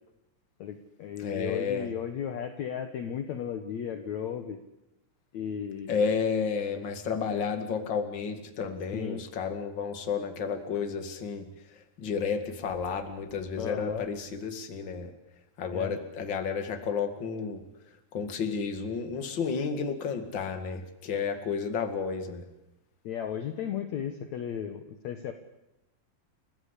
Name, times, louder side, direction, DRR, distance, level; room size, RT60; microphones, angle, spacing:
voice 1, 0.6-4.6 5.3-6.0 7.3-7.5 8.9-9.2 13.6-14.1 15.7-16.0 23.0-25.3, left 8 dB, 60° left, 8 dB, 2.2 m, -35 dB
voice 2, 1.2-1.9 5.9-11.5 12.0-15.1 15.6-17.6 18.1-22.4, left 5 dB, 35° left, 7 dB, 2.4 m, -31 dB
29.5 x 16.0 x 8.3 m, 0.94 s
omnidirectional pair, 4.1 m